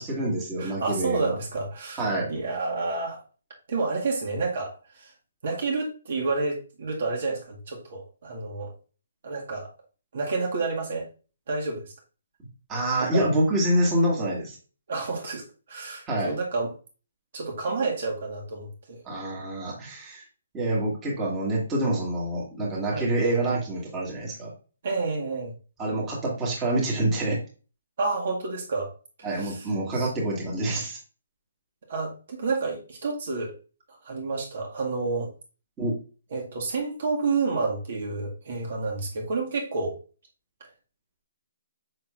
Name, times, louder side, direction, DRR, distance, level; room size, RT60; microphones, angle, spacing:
voice 1, 0.0-1.4 2.0-2.3 12.7-14.6 16.1-16.3 19.1-20.2 20.5-24.5 25.8-27.4 29.2-31.0 35.8-36.0, right 1 dB, 10° right, -4 dB, 1.9 m, -26 dB
voice 2, 0.6-3.2 3.7-5.1 5.4-8.7 9.2-9.7 10.1-11.1 11.5-11.8 13.0-13.3 14.9-16.7 17.3-19.0 22.9-23.1 24.8-25.5 28.0-28.9 29.3-30.1 31.9-33.5 34.0-35.3 36.3-40.0, right 3 dB, 50° right, -1 dB, 1.9 m, -29 dB
6.4 x 6.1 x 2.5 m, 0.36 s
hypercardioid pair, 170°, 0 cm